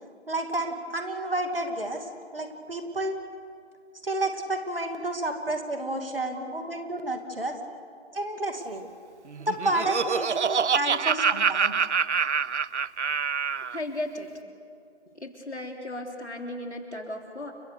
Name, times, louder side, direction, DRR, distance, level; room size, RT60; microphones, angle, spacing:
voice 1, 0.3-3.1 4.0-7.5 8.1-8.8 9.5-11.7, right 1 dB, 55° right, 5 dB, 2.6 m, -30 dB
voice 2, 6.3-6.7 10.6-11.0 13.7-14.5 15.1-17.5, left 1 dB, 75° left, 2 dB, 3.7 m, -36 dB
Laughter, 9.3-13.8, right 6 dB, 85° right, 0.6 m, -26 dB
29.5 x 16.0 x 6.8 m, 2.4 s
figure-of-eight pair, 175°, 34 cm